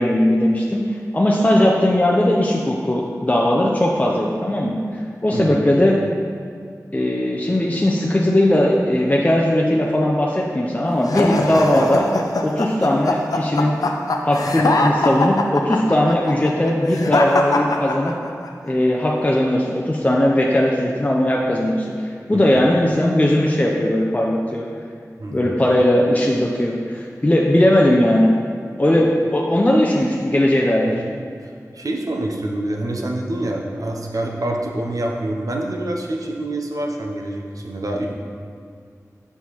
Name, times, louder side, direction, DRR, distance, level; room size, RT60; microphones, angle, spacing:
voice 1, 0.0-4.8 5.2-6.0 6.9-12.1 12.4-13.8 14.2-18.1 18.6-24.7 25.3-28.3 28.8-30.9, left 1 dB, 25° left, -2 dB, 0.5 m, -18 dB
sound 1, 11.0-18.5, left 2 dB, 80° left, 0.4 m, -22 dB
voice 2, 25.2-25.5 30.8-31.1 31.4-38.1, right 1 dB, 70° right, 0 dB, 0.7 m, -26 dB
6.4 x 5.5 x 3.0 m, 2.2 s
wide cardioid pair, 50°, 6 cm